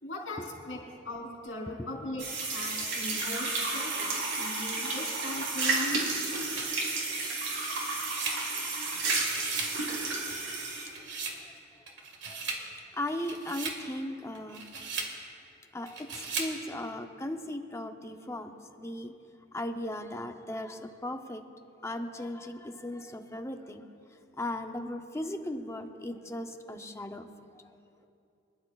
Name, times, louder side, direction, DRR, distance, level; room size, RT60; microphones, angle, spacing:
voice 1, 0.0-0.8 1.0-6.0 8.9-9.1, left 1 dB, 85° left, -2 dB, 3.4 m, -39 dB
sound 1, 2.2-10.9, right 3 dB, 85° right, 3.4 m, -32 dB
sound 2, 2.6-4.1 4.7-4.8 6.0-9.0 9.2-9.8 10.1-11.4 11.9-12.7 13.1-13.8 14.3-15.2 15.9-16.6, right 4 dB, 65° right, 1.8 m, -39 dB
voice 2, 12.3-12.6 12.9-14.6 15.7-18.5 18.8-19.1 19.5-21.4 21.8-23.8 24.3-27.3 27.5-27.6, left 1 dB, 15° left, 5 dB, 0.7 m, -37 dB
25.0 x 12.0 x 2.4 m, 2.6 s
head